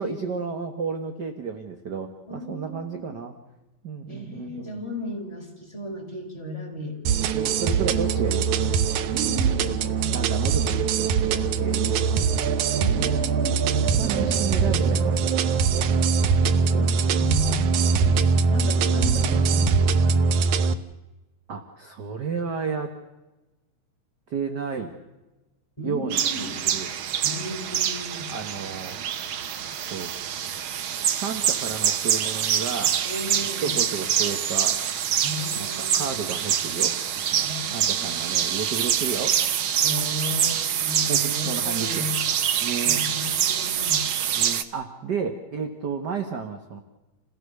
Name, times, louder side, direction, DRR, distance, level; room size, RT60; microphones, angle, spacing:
voice 1, 0.0-3.3 3.8-4.8 7.3-8.7 10.1-12.2 14.0-15.3 15.7-16.1 16.7-17.1 17.8-18.3 21.5-22.9 24.3-24.9 25.8-26.9 28.3-29.0 29.8-30.1 30.8-32.9 33.4-34.8 35.6-36.9 37.3-39.4 41.1-42.1 42.6-43.0 44.3-46.8, right 6 dB, 45° right, 6 dB, 1.5 m, -32 dB
voice 2, 2.2-3.0 4.1-7.0 9.1-10.1 12.7-14.5 16.7-17.6 18.5-20.3 25.8-26.5 27.2-28.3 33.0-33.7 35.2-36.2 37.4-38.3 39.8-42.2 42.8-44.1, left 1 dB, 10° left, 0 dB, 4.9 m, -34 dB
sound 1, 7.1-20.7, right 5 dB, 80° right, 2.4 m, -22 dB
sound 2, 26.1-44.6, right 9 dB, 60° right, 1.4 m, -25 dB
28.5 x 16.5 x 6.8 m, 1.1 s
omnidirectional pair, 3.4 m